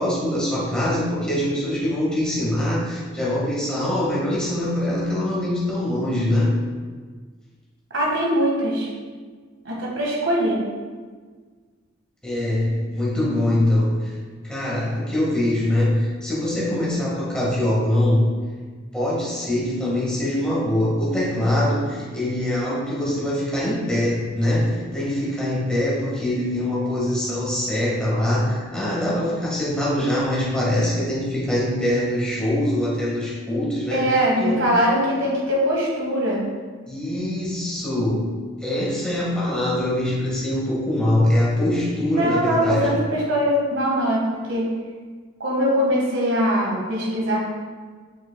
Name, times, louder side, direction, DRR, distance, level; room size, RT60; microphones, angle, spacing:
voice 1, 0.0-6.6 12.2-14.1 14.4-18.2 18.9-34.1 34.4-34.7 36.9-38.3 38.6-43.0, left 1 dB, 5° left, -7 dB, 1.8 m, -23 dB
voice 2, 7.9-8.9 9.6-10.6 33.9-36.4 42.2-44.7 45.4-47.4, equal, 70° right, -3 dB, 1.8 m, -22 dB
7.3 x 6.0 x 2.3 m, 1.5 s
head